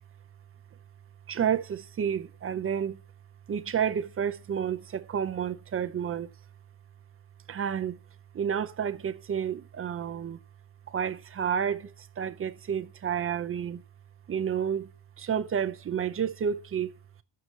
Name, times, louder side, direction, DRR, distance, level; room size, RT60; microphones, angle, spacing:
voice 1, 1.3-3.0 3.5-6.3 7.5-8.0 8.3-10.4 10.9-13.8 14.3-14.9 15.2-16.9, right 8 dB, 30° right, 0.6 m, -30 dB
7.8 x 6.8 x 7.5 m
cardioid pair, 155°, 45 cm